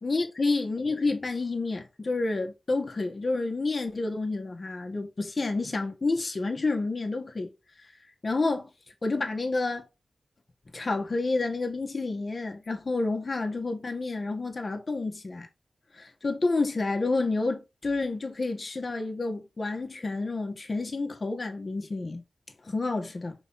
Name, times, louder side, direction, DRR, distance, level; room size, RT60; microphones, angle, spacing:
voice 1, 0.0-7.5 8.2-8.7 9.0-9.8 10.7-15.5 15.9-22.2 22.7-23.3, left 3 dB, 40° left, 1.7 m, -29 dB
5.5 x 4.6 x 4.3 m
wide cardioid pair, 105°, 0 cm